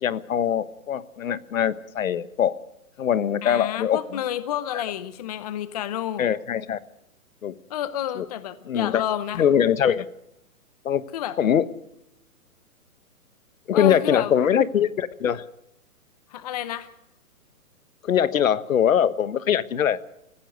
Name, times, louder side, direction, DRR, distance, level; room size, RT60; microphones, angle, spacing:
voice 1, 0.0-2.6 3.0-4.0 6.2-6.8 7.4-7.5 8.2-8.3 8.7-9.0 9.3-10.0 10.8-11.0 11.4-11.6 13.7-15.5 18.0-20.0, left 9 dB, 60° left, 15 dB, 1.3 m, -22 dB
voice 2, 3.4-6.3 7.7-9.4 11.1-11.4 13.7-14.4 16.3-16.9, left 11 dB, 25° left, 14 dB, 0.7 m, -30 dB
26.5 x 16.0 x 6.5 m, 0.85 s
hypercardioid pair, 150°, 45 cm